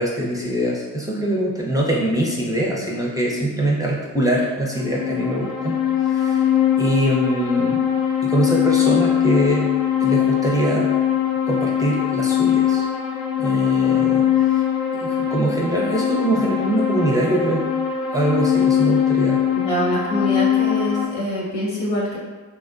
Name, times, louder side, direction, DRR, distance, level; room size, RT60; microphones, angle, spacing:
voice 1, 0.0-5.7 6.1-6.5 6.8-7.8 8.2-9.7 10.0-10.9 11.5-12.9 13.4-14.6 15.0-17.6 18.1-19.4, right 1 dB, 10° right, -4 dB, 0.6 m, -23 dB
sound 1, 4.7-21.1, left 9 dB, 50° left, 0.5 m, -21 dB
voice 2, 19.5-22.2, equal, 75° left, -7 dB, 1.2 m, -24 dB
3.3 x 2.2 x 2.5 m, 1.3 s
supercardioid pair, 40°, 45 cm